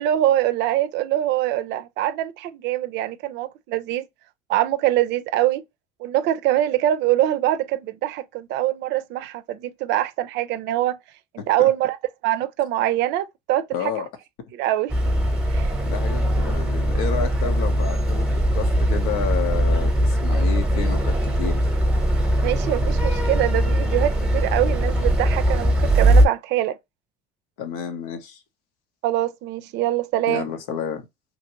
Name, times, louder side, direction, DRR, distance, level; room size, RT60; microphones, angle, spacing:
voice 1, 0.0-4.1 4.5-5.6 6.0-11.0 11.5-12.0 12.2-13.7 14.5-14.9 15.5-15.7 22.4-26.8 29.0-30.5, right 13 dB, 65° right, 0.5 m, -23 dB
voice 2, 11.4-11.7 13.7-14.1 15.8-21.6 27.6-28.4 30.3-31.1, left 7 dB, 90° left, 0.8 m, -30 dB
sound 1, 14.9-26.3, right 1 dB, 5° right, 0.8 m, -20 dB
2.9 x 2.6 x 2.8 m
supercardioid pair, 95°, 19 cm